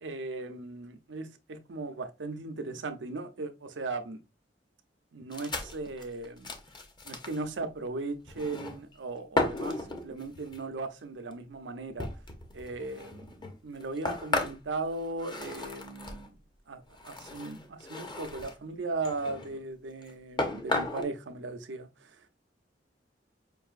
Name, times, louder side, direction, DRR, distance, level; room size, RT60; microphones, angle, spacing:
voice 1, 0.0-4.2 5.1-6.5 7.0-12.1 12.5-13.3 13.6-16.3 16.7-22.2, right 3 dB, 75° right, 0.6 m, -37 dB
sound 1, 5.3-7.4 8.3-8.9 9.4-10.6 11.3-11.4 12.0-16.3 16.9-18.6 19.0-19.6 20.0-20.1 20.4-21.0, left 2 dB, 25° left, 0.7 m, -35 dB
5.4 x 2.6 x 2.4 m
head